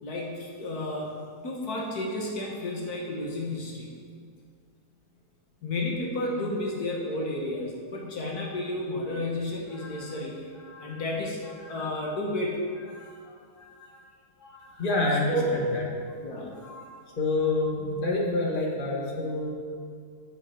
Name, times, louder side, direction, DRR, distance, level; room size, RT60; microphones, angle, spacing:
voice 1, 0.0-1.1 1.4-3.9 5.6-14.0 14.4-14.8 15.3-15.7 16.2-16.9, left 1 dB, 70° left, -2 dB, 1.8 m, -32 dB
voice 2, 14.8-15.8 17.2-19.5, left 2 dB, 30° left, -3 dB, 1.7 m, -27 dB
7.8 x 6.3 x 7.8 m, 2.1 s
omnidirectional pair, 1.7 m